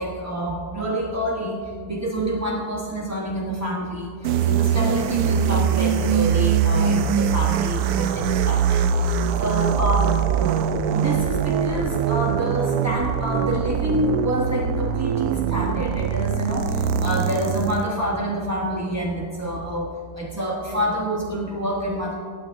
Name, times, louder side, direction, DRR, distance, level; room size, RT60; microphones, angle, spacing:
voice 1, 0.0-1.6 1.9-4.1 4.4-10.5 10.9-22.1, equal, 15° right, -3 dB, 0.8 m, -27 dB
sound 1, 4.2-17.9, right 7 dB, 75° right, 1.1 m, -22 dB
17.0 x 12.5 x 2.6 m, 2.3 s
omnidirectional pair, 1.7 m